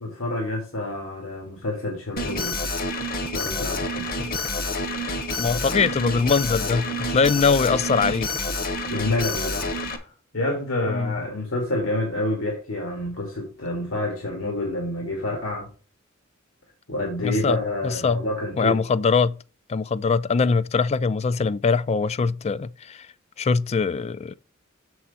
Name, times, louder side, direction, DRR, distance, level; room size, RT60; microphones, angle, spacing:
voice 1, 0.0-2.6 3.3-4.1 8.9-9.9 10.3-15.7 16.9-18.8, left 1 dB, 85° left, 2.2 m, -28 dB
Alarm, 2.2-10.0, left 1 dB, 45° left, 1.1 m, -28 dB
voice 2, 5.4-8.3 10.9-11.2 17.2-17.6 17.8-18.3 18.6-19.4 19.7-23.1 23.4-24.3, left 5 dB, 30° left, 0.3 m, -22 dB
6.9 x 6.2 x 4.2 m
head